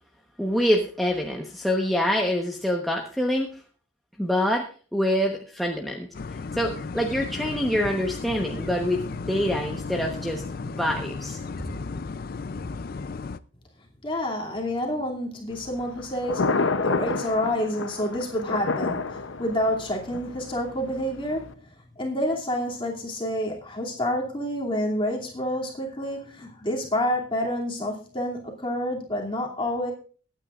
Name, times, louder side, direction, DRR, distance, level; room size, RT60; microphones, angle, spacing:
voice 1, 0.4-3.5 4.2-4.7 4.9-6.1 6.5-11.7, equal, ahead, -1 dB, 1.1 m, -26 dB
sound 1, 6.1-13.4, left 4 dB, 50° left, 0.4 m, -35 dB
voice 2, 14.0-16.5 16.8-21.5 22.0-29.9, left 1 dB, 25° left, -1 dB, 2.6 m, -28 dB
Thunder, 15.5-21.5, left 3 dB, 80° left, 0.7 m, -30 dB
22.5 x 9.2 x 2.5 m, 0.41 s
head